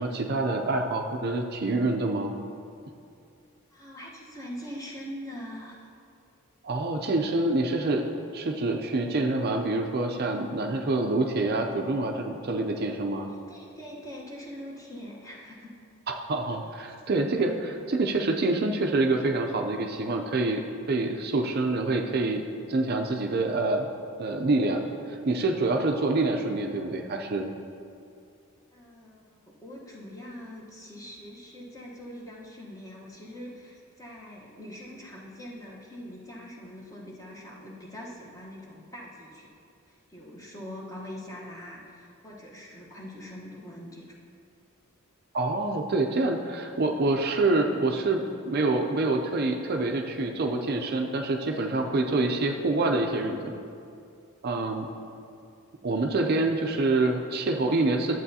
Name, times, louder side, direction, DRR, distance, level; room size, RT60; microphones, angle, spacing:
voice 1, 0.0-2.3 6.6-8.1 8.3-13.3 16.3-20.6 20.9-23.9 24.2-27.5 45.3-53.6 54.4-54.9 55.8-58.2, right 2 dB, 45° right, 3 dB, 0.4 m, -26 dB
voice 2, 3.7-5.9 10.7-10.9 13.3-15.7 28.7-39.5 39.9-44.1 55.1-55.2, equal, 15° left, -3 dB, 1.0 m, -43 dB
11.5 x 7.7 x 2.7 m, 2.4 s
head